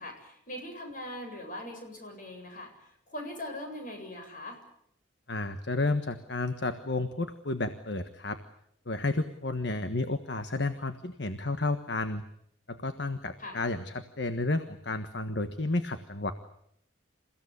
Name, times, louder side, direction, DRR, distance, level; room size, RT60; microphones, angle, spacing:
voice 1, 0.0-4.6 13.4-13.6, left 1 dB, 45° left, 4 dB, 7.8 m, -41 dB
voice 2, 5.3-8.4 8.9-12.2 12.7-16.3, left 2 dB, 60° left, 9 dB, 1.5 m, -31 dB
28.5 x 16.5 x 9.9 m, 0.73 s
head